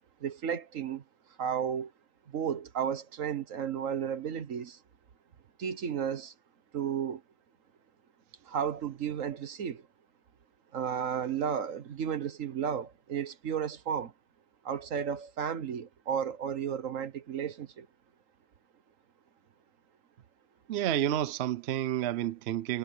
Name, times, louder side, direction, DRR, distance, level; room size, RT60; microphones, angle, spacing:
voice 1, 0.2-1.0 1.4-1.9 2.3-4.8 5.6-6.3 6.7-7.2 8.5-9.8 10.7-14.1 14.6-17.9, right 8 dB, 50° right, 1.4 m, -33 dB
voice 2, 20.7-22.8, right 11 dB, 75° right, 0.6 m, -30 dB
omnidirectional pair, 1.9 m